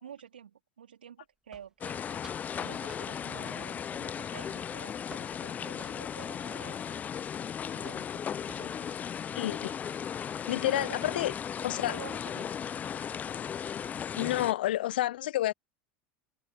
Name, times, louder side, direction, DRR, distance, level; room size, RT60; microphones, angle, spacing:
voice 1, 0.0-2.3 2.6-7.0 7.7-8.9 10.6-11.2 11.9-12.5, right 9 dB, 85° right, 2.7 m, -49 dB
sound 1, 1.5-2.0 2.2-2.5 2.9-3.1 3.7-4.0 4.3-5.3 5.8-7.4 7.8-8.1 8.5-8.9, right 2 dB, 10° right, 2.4 m, -53 dB
sound 2, 1.8-14.5, left 8 dB, 30° left, 0.7 m, -36 dB
voice 2, 9.3-9.7 10.5-11.3 11.6-11.9 14.2-15.5, left 14 dB, 75° left, 0.7 m, -29 dB
hypercardioid pair, 80°, 5 cm